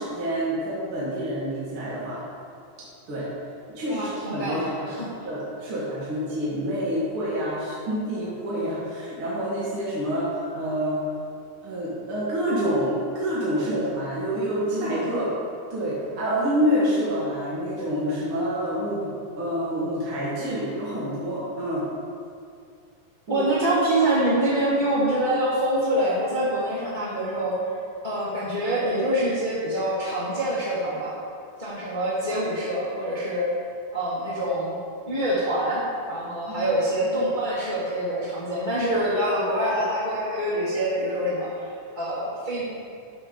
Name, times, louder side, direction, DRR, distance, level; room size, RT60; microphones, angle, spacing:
voice 1, 0.0-2.2 3.1-3.3 3.7-4.9 5.2-11.0 11.6-15.3 15.7-21.9 23.3-23.5 36.5-36.7 37.0-37.2, equal, 45° right, -9 dB, 2.2 m, -27 dB
voice 2, 3.9-5.3 23.3-27.7 28.0-31.1 31.6-33.5 33.9-34.8 35.1-35.8 36.1-42.6, right 1 dB, 25° left, -9 dB, 1.2 m, -25 dB
11.5 x 4.4 x 5.2 m, 2.4 s
omnidirectional pair, 3.9 m